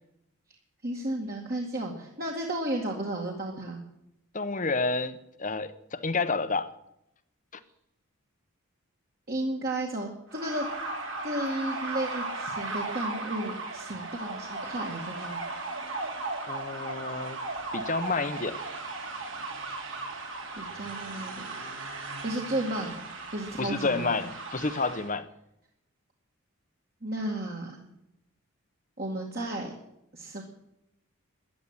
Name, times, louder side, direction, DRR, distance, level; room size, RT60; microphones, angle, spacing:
voice 1, 0.8-3.8 9.3-10.7 11.2-15.4 20.6-21.7 22.2-23.0 23.3-24.1 27.0-27.8 29.0-29.7 30.1-30.4, right 1 dB, 45° right, 2.3 m, -33 dB
voice 2, 4.3-6.7 16.5-17.4 17.7-18.6 23.6-25.3, left 3 dB, 35° left, 1.0 m, -29 dB
sound 1, 10.3-25.1, right 3 dB, 60° right, 3.1 m, -36 dB
14.0 x 10.5 x 9.9 m
head